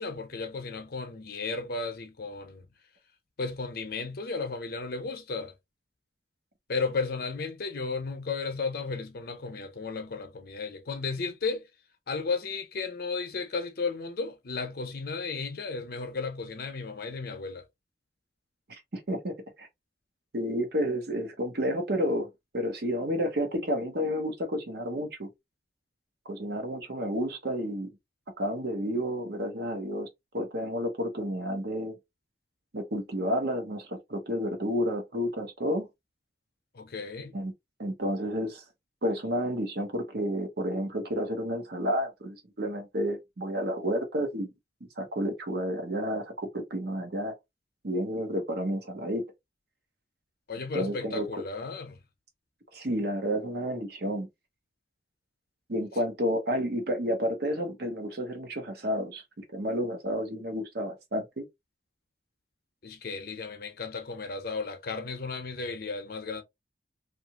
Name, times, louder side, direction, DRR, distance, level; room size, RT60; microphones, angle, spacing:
voice 1, 0.0-2.7 3.4-5.5 6.7-11.6 12.1-17.6 36.7-37.4 50.5-52.0 62.8-66.4, left 4 dB, 55° left, 0.7 m, -34 dB
voice 2, 18.7-19.7 20.3-25.3 26.3-27.9 28.4-30.1 30.3-32.0 32.7-35.9 37.3-37.5 37.8-38.6 39.0-44.5 45.0-47.3 47.8-49.2 50.7-51.3 52.7-54.3 55.7-61.4, equal, 60° right, 0.9 m, -31 dB
2.8 x 2.5 x 2.8 m
head